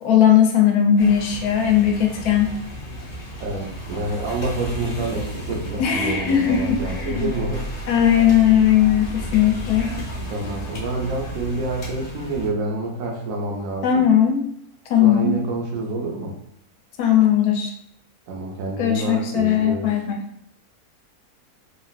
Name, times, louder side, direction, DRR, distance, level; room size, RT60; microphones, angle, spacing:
voice 1, 0.0-2.5 5.8-7.3 7.9-10.0 13.8-14.4 14.9-15.4 17.0-17.7 18.8-20.2, left 9 dB, 80° left, 2 dB, 1.1 m, -18 dB
sound 1, 1.0-12.5, equal, 45° left, 0.8 m, -33 dB
voice 2, 3.4-7.7 10.3-14.0 15.0-16.3 18.3-19.9, right 2 dB, 65° right, -1 dB, 1.0 m, -28 dB
3.0 x 2.4 x 2.4 m, 0.73 s
omnidirectional pair, 1.6 m